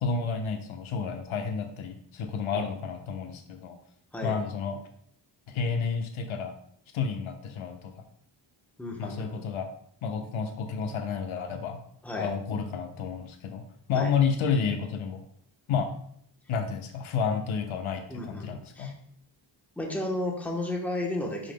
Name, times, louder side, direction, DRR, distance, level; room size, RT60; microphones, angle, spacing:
voice 1, 0.0-3.8 4.2-4.8 5.5-6.5 6.9-7.9 9.0-9.7 10.0-11.8 12.1-15.3 15.7-15.9 16.5-18.9, left 6 dB, 90° left, 4 dB, 1.1 m, -30 dB
voice 2, 8.8-9.4 12.0-12.3 13.9-14.1 18.1-18.9 19.8-21.5, left 1 dB, 5° left, -1 dB, 1.1 m, -33 dB
10.5 x 5.7 x 2.3 m, 0.66 s
wide cardioid pair, 175°, 47 cm